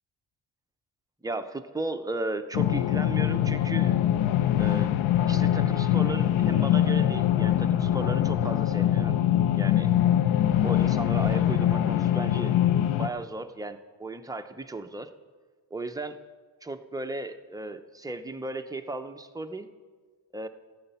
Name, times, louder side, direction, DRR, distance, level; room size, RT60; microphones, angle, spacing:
voice 1, 1.2-3.9 4.6-4.9 5.3-9.2 9.6-9.9 10.6-12.5 12.9-15.1 15.7-16.2 16.6-19.7 20.3-20.5, right 2 dB, 10° right, 6 dB, 0.4 m, -35 dB
sound 1, 2.5-13.1, left 11 dB, 80° left, 0.6 m, -23 dB
15.5 x 8.0 x 5.5 m, 1.5 s
wide cardioid pair, 150°, 47 cm